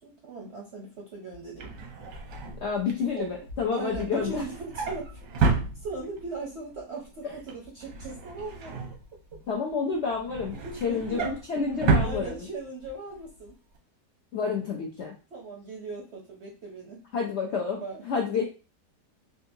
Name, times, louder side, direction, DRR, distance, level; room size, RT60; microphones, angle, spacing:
voice 1, 0.0-1.8 3.0-3.3 3.7-5.2 5.7-8.8 10.5-11.3 12.0-13.6 15.3-17.1 17.8-18.4, right 3 dB, 60° right, -1 dB, 0.7 m, -39 dB
Drawer open or close, 1.3-6.4 6.7-7.1 7.3-9.5 9.9-12.9 13.3-13.5 13.7-13.8, right 4 dB, 90° right, 1.4 m, -31 dB
voice 2, 2.6-4.4 7.2-7.3 9.5-12.3 14.3-15.1 17.1-18.4, left 5 dB, 70° left, -1 dB, 0.6 m, -29 dB
3.7 x 2.5 x 2.6 m, 0.33 s
omnidirectional pair, 1.8 m